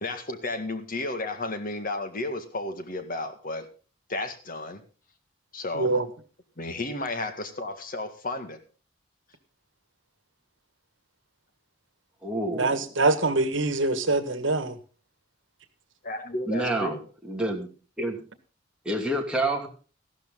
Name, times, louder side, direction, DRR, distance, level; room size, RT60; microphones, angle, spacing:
voice 1, 0.0-3.7 4.1-4.8 5.5-6.0 6.6-8.6 16.0-17.0, left 2 dB, 45° left, 1.8 m, -33 dB
voice 2, 5.7-6.0 12.5-14.7, right 3 dB, 70° right, 1.6 m, -24 dB
voice 3, 12.2-12.9 16.5-17.0 17.2-17.7 18.0-18.2 18.8-19.7, right 1 dB, 5° right, 2.6 m, -28 dB
14.5 x 12.5 x 3.8 m
head